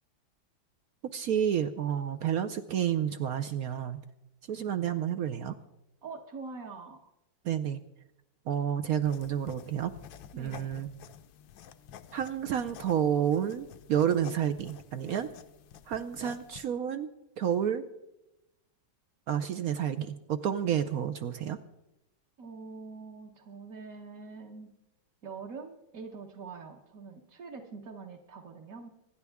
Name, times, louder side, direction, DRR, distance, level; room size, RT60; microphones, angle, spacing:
voice 1, 1.1-4.0 4.5-5.5 7.4-7.8 8.5-9.9 10.4-10.9 12.1-15.3 15.9-17.1 17.4-17.8 19.3-21.6, right 9 dB, 70° right, 9 dB, 0.9 m, -30 dB
voice 2, 6.0-7.1 10.3-10.7 22.4-24.7 25.2-28.9, right 4 dB, 50° right, -1 dB, 1.4 m, -44 dB
Writing with Fountain Pen Nib, 9.0-16.6, left 9 dB, 80° left, 1.4 m, -50 dB
25.0 x 11.0 x 3.5 m, 0.90 s
omnidirectional pair, 2.2 m